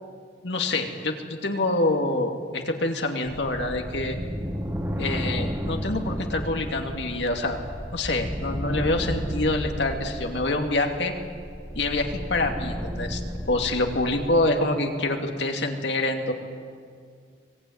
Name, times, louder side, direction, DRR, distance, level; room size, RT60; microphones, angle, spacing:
voice 1, 0.4-4.2 5.0-7.6 7.9-11.1 11.7-13.2 13.5-16.3, left 2 dB, 75° left, 3 dB, 2.5 m, -26 dB
sound 1, 3.2-14.5, equal, 15° right, 1.9 m, -33 dB
24.0 x 19.5 x 9.5 m, 2.2 s
head